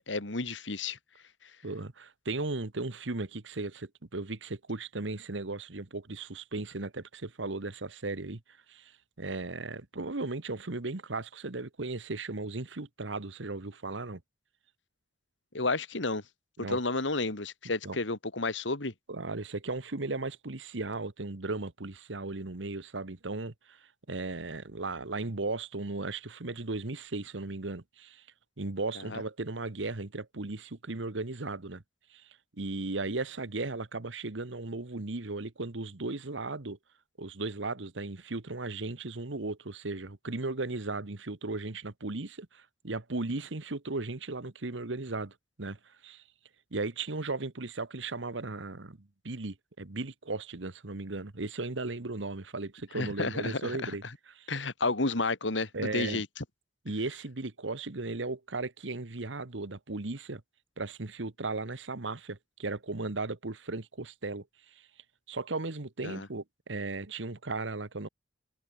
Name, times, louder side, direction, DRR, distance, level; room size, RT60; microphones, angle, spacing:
voice 1, 0.1-1.0 15.5-16.2 16.7-18.9 29.1-29.2 52.9-53.9 54.5-56.4 66.0-66.3, left 3 dB, 85° left, 2.4 m, -31 dB
voice 2, 1.6-8.4 8.7-8.9 9.2-14.2 16.6-16.8 17.8-18.0 19.1-28.2 28.6-31.8 32.1-32.3 32.6-36.8 37.2-46.2 46.7-54.0 54.3-54.5 55.7-56.2 56.8-60.4 60.8-64.4 64.7-64.9 65.3-68.1, right 3 dB, 85° right, 1.4 m, -36 dB
head